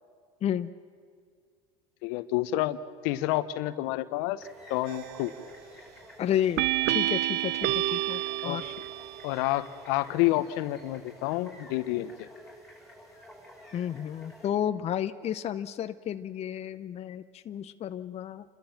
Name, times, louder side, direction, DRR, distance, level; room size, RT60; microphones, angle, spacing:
voice 1, 0.4-0.7 6.2-8.7 13.7-18.4, left 10 dB, 35° left, 10 dB, 0.7 m, -32 dB
voice 2, 2.0-2.8 3.0-5.3 8.4-8.6 9.2-12.3, left 16 dB, 65° left, 14 dB, 1.0 m, -29 dB
sound 1, 4.4-14.5, equal, ahead, 5.5 m, -51 dB
sound 2, 4.9-5.4 6.6-9.3, right 15 dB, 55° right, 0.7 m, -29 dB
29.5 x 13.0 x 7.3 m, 2.1 s
supercardioid pair, 105°, 20 cm